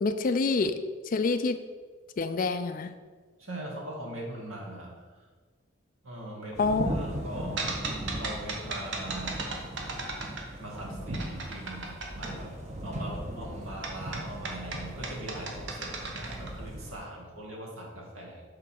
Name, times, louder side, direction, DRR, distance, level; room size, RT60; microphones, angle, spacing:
voice 1, 0.0-0.8 1.1-1.6 2.2-2.9 6.6-7.0, left 3 dB, 40° left, 10 dB, 0.4 m, -27 dB
voice 2, 3.4-5.1 6.0-7.6 8.2-9.4 10.6-12.6 12.8-18.4, right 1 dB, 80° right, -2 dB, 2.0 m, -41 dB
sound 1, 6.5-16.9, right 1 dB, 35° right, 1.1 m, -38 dB
sound 2, 7.6-10.8 11.1-12.3 13.8-16.5, right 3 dB, 60° right, 1.1 m, -36 dB
6.6 x 3.9 x 6.4 m, 1.5 s
head